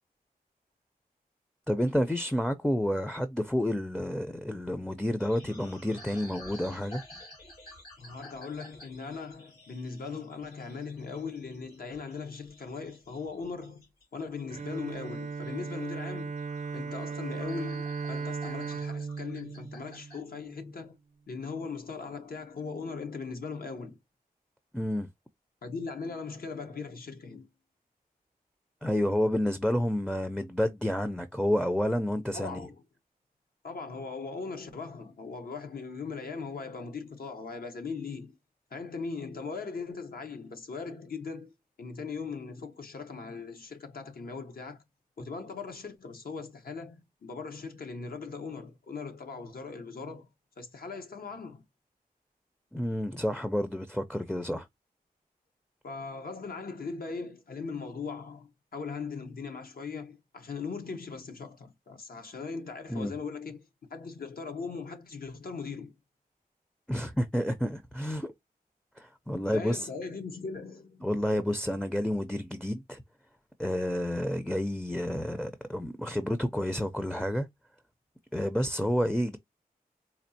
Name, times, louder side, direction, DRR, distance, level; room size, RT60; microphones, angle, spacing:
voice 1, 1.7-7.0 24.7-25.1 28.8-32.7 52.7-54.7 62.9-63.2 66.9-68.3 69.0-69.9 71.0-73.0 73.6-77.5 78.3-79.4, equal, 5° left, 0.5 m, -30 dB
sound 1, 5.2-20.2, left 1 dB, 85° left, 2.9 m, -52 dB
voice 2, 8.0-13.8 14.1-16.3 16.7-21.0 21.3-24.0 25.6-27.5 32.3-32.8 33.6-38.4 38.7-44.8 45.2-50.3 50.6-51.6 55.8-66.0 69.5-71.1, left 4 dB, 70° left, 0.9 m, -39 dB
Bowed string instrument, 14.5-20.7, right 5 dB, 50° right, 0.5 m, -37 dB
4.3 x 2.4 x 2.6 m
cardioid pair, 65°, 16 cm